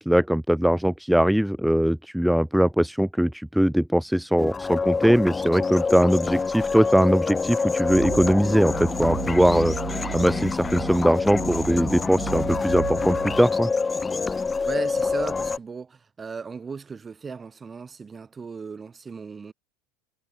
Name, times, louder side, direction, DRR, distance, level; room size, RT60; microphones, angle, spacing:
voice 1, 0.1-13.7, equal, ahead, 0.4 m, -21 dB
sound 1, 4.4-15.6, left 4 dB, 20° left, 1.9 m, -27 dB
sound 2, 7.8-13.4, right 28 dB, 65° right, 5.2 m, -35 dB
voice 2, 14.6-19.5, right 5 dB, 25° right, 6.7 m, -36 dB
hypercardioid pair, 95°, 0 cm